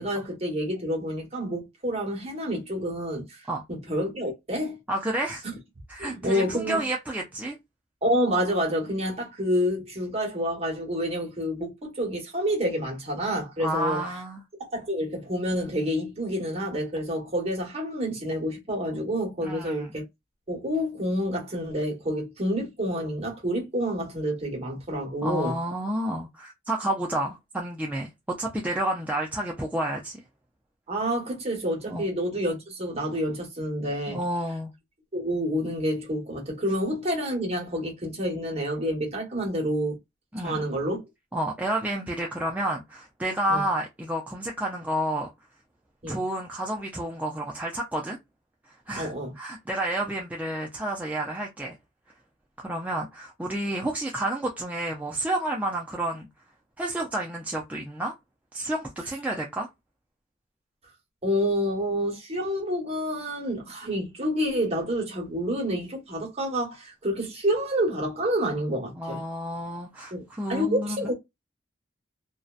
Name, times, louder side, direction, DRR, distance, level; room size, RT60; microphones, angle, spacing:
voice 1, 0.0-3.4 3.7-4.8 5.4-5.6 6.0-6.8 8.0-14.0 14.7-20.0 20.5-25.6 30.9-34.2 35.1-40.0 40.4-41.0 43.5-43.6 46.0-46.2 49.0-49.3 61.2-69.2 70.1-70.2 70.5-71.1, equal, 35° right, 1.1 m, -28 dB
voice 2, 4.9-5.5 5.9-7.6 13.6-14.4 19.4-19.9 25.2-30.2 31.9-32.0 34.1-34.7 40.3-40.6 41.3-45.3 46.1-48.2 48.7-51.8 52.6-56.3 56.8-58.1 58.5-59.7 69.0-71.0, right 1 dB, 10° right, 0.3 m, -30 dB
2.6 x 2.1 x 2.3 m
head